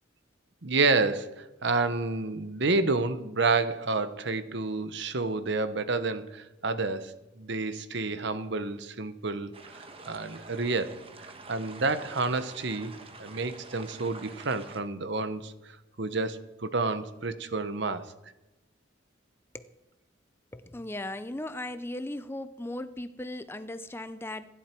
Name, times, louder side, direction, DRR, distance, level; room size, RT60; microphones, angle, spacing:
voice 1, 0.6-11.0 11.5-15.5 16.0-18.1, right 3 dB, 60° right, 12 dB, 1.0 m, -29 dB
sound 1, 9.5-14.8, right 3 dB, 30° right, 1.3 m, -47 dB
voice 2, 20.5-24.5, left 1 dB, 10° left, 12 dB, 0.5 m, -37 dB
26.0 x 11.5 x 4.6 m, 0.99 s
head